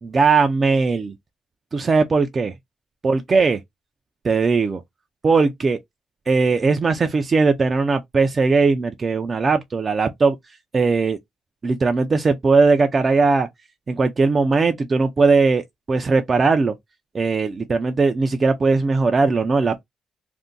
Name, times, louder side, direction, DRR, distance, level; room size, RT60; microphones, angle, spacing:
voice 1, 0.0-1.1 1.7-2.5 3.0-3.6 4.2-4.8 5.2-5.8 6.3-10.4 10.7-11.2 11.6-13.5 13.9-15.6 15.9-16.7 17.1-19.8, right 4 dB, 35° right, 0.4 m, -19 dB
2.6 x 2.1 x 3.7 m
cardioid pair, 90°, 0 cm